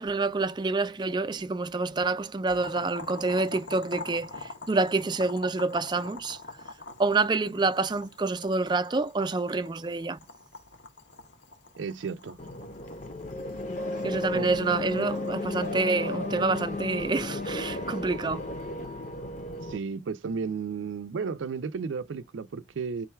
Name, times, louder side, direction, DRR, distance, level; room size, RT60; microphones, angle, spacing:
voice 1, 0.0-6.4 7.0-10.2 14.0-18.5, right 3 dB, 25° right, 0.4 m, -27 dB
Boiling, 2.5-15.7, left 3 dB, 70° left, 0.8 m, -45 dB
voice 2, 11.8-12.4 14.3-14.5 19.7-23.1, right 5 dB, 90° right, 0.4 m, -33 dB
sound 1, 12.4-19.8, left 2 dB, 40° left, 0.7 m, -34 dB
3.8 x 2.2 x 4.4 m
head